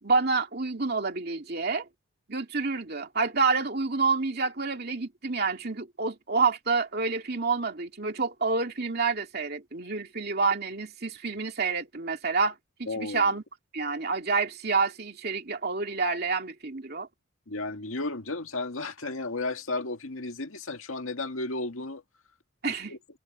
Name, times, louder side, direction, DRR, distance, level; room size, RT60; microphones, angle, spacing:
voice 1, 0.0-1.9 2.3-13.4 13.7-17.1 22.6-23.0, right 4 dB, 50° right, 2.5 m, -28 dB
voice 2, 12.9-13.3 17.5-22.0 22.9-23.0, left 2 dB, 85° left, 2.0 m, -33 dB
head